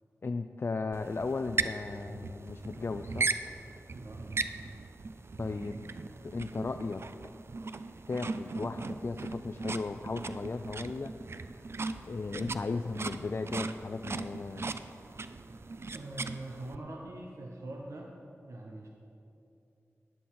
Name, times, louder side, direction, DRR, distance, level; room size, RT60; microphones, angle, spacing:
voice 1, 0.2-3.3 5.4-5.9 6.2-7.0 8.1-11.1 12.1-14.7, left 3 dB, 50° left, 7 dB, 0.4 m, -36 dB
sound 1, 0.9-16.8, right 3 dB, 55° right, 0.4 m, -38 dB
voice 2, 14.8-15.5 15.9-18.2 18.4-18.9, right 2 dB, 75° right, 0 dB, 0.9 m, -43 dB
11.0 x 9.4 x 4.3 m, 2.7 s
wide cardioid pair, 60°, 5 cm